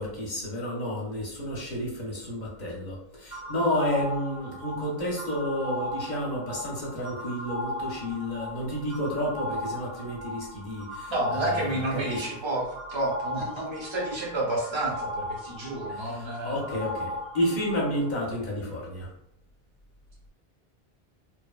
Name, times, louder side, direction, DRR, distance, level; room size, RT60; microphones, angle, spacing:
voice 1, 0.0-12.2 15.9-19.1, equal, 50° left, -3 dB, 0.8 m, -31 dB
sound 1, 3.3-18.1, left 1 dB, 55° right, 1.1 m, -37 dB
voice 2, 11.1-16.6, right 2 dB, 30° right, -3 dB, 0.7 m, -30 dB
2.9 x 2.1 x 2.3 m, 0.76 s
omnidirectional pair, 1.0 m